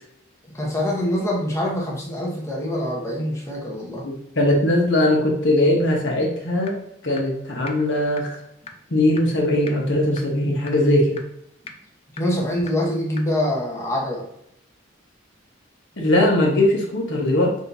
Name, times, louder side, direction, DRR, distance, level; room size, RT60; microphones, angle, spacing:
voice 1, 0.5-4.1 12.1-14.3, left 1 dB, 15° left, -2 dB, 0.9 m, -25 dB
voice 2, 4.0-6.8 7.0-8.3 8.9-11.2 16.0-17.6, left 1 dB, 60° left, -1 dB, 1.1 m, -20 dB
sound 1, 6.7-6.8 7.2-7.3 7.7-7.8 8.2-8.3 8.7-8.8 9.2-9.3 9.7-9.8 10.2-10.3 10.7-10.8 11.2-11.3 11.7-11.8 12.2-12.3 12.7-12.8 13.2-13.3, left 5 dB, 30° left, 0.4 m, -36 dB
6.6 x 2.7 x 2.7 m, 0.75 s
head